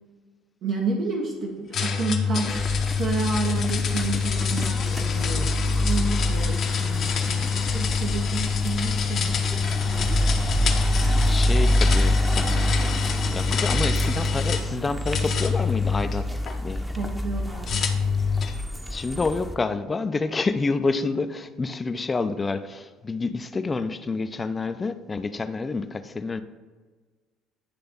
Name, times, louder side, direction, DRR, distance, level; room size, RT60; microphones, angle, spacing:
voice 1, 0.6-2.5 3.0-10.0 17.0-17.8, right 4 dB, 60° right, -2 dB, 1.0 m, -30 dB
sound 1, 1.7-14.7 15.1-16.6 17.7-18.6, left 6 dB, 50° left, 0.9 m, -26 dB
sound 2, 2.4-19.5, equal, 5° right, 0.9 m, -27 dB
voice 2, 11.2-12.8 13.3-16.9 18.9-26.4, left 3 dB, 25° left, 10 dB, 0.5 m, -28 dB
9.9 x 3.3 x 5.3 m, 1.4 s
hypercardioid pair, 65°, 0 cm